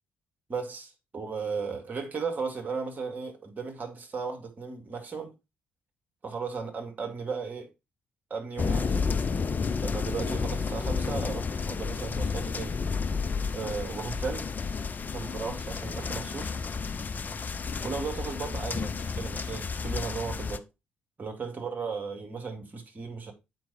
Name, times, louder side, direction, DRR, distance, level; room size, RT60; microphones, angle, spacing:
voice 1, 0.5-5.3 6.2-7.7 8.3-9.1 9.8-12.8 13.5-14.5 15.1-16.5 17.8-20.6 21.2-23.3, right 5 dB, 35° right, 2.3 m, -35 dB
sound 1, 8.6-20.6, left 5 dB, 35° left, 0.6 m, -31 dB
7.5 x 5.4 x 4.1 m
figure-of-eight pair, 45°, 5 cm